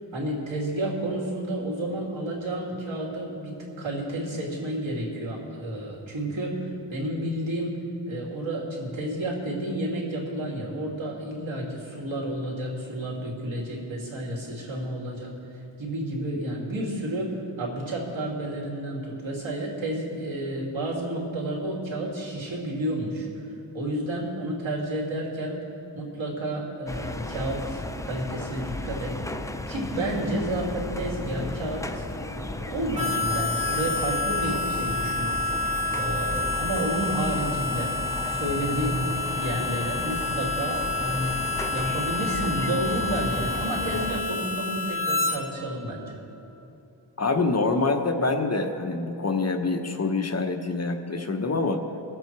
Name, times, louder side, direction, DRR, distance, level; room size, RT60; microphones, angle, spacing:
voice 1, 0.1-7.8 8.1-15.3 15.8-23.3 23.7-25.6 25.9-29.2 29.7-35.4 35.9-38.0 38.3-39.0 39.4-41.4 41.7-46.1, right 1 dB, 80° right, -3 dB, 2.8 m, -31 dB
sound 1, 26.9-44.2, left 1 dB, 10° left, 0.4 m, -34 dB
Harmonica, 32.9-45.4, left 3 dB, 15° right, 1.2 m, -29 dB
voice 2, 47.2-51.8, left 3 dB, 35° left, 4 dB, 0.9 m, -25 dB
22.0 x 7.8 x 4.6 m, 2.9 s
wide cardioid pair, 115°, 46 cm